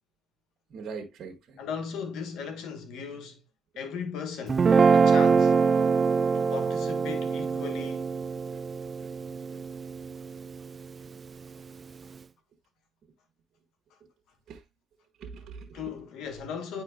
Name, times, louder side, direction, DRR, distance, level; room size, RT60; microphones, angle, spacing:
voice 1, 0.7-1.6 8.5-8.6 9.0-9.1 9.5-9.6 14.5-14.6 15.2-15.8, right 5 dB, 65° right, 1.3 m, -42 dB
voice 2, 1.6-3.4 3.7-5.5 6.3-8.1 15.7-16.8, left 6 dB, 85° left, 1.5 m, -37 dB
Guitar, 4.5-10.8, right 5 dB, 40° right, 0.3 m, -24 dB
9.5 x 4.4 x 2.3 m
cardioid pair, 90°, 0 cm